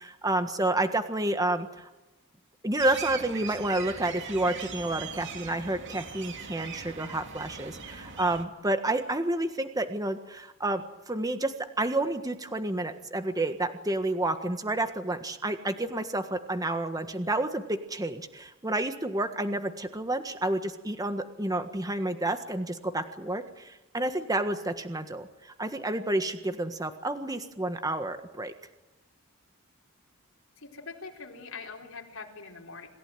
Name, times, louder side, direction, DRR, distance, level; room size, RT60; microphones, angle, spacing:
voice 1, 0.0-1.9 2.6-28.5, right 2 dB, 15° right, 8 dB, 1.6 m, -30 dB
sound 1, 2.8-8.4, right 6 dB, 60° right, 2.7 m, -40 dB
voice 2, 30.6-32.9, left 4 dB, 75° left, 1 dB, 4.4 m, -43 dB
27.0 x 15.5 x 9.3 m, 1.0 s
head